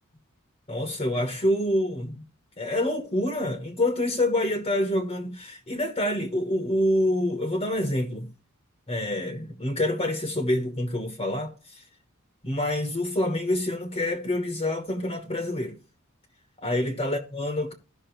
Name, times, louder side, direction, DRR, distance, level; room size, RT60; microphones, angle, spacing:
voice 1, 0.7-2.2 2.6-8.3 8.9-11.8 12.4-15.8 16.6-17.7, left 1 dB, 25° left, 1.2 m, -27 dB
14.5 x 6.1 x 3.1 m
head